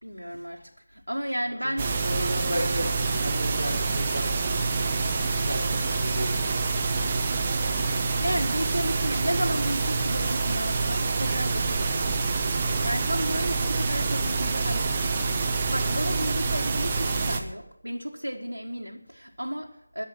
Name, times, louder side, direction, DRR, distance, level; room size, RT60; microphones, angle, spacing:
voice 1, 0.0-1.9 7.9-15.1 15.4-20.0, equal, 85° right, -1 dB, 1.6 m, -33 dB
voice 2, 1.6-4.9 5.3-6.7, equal, 90° left, 2 dB, 3.3 m, -35 dB
sound 1, 1.8-17.4, right 4 dB, 20° right, 1.0 m, -26 dB
21.0 x 7.4 x 6.1 m, 0.84 s
figure-of-eight pair, 165°, 0 cm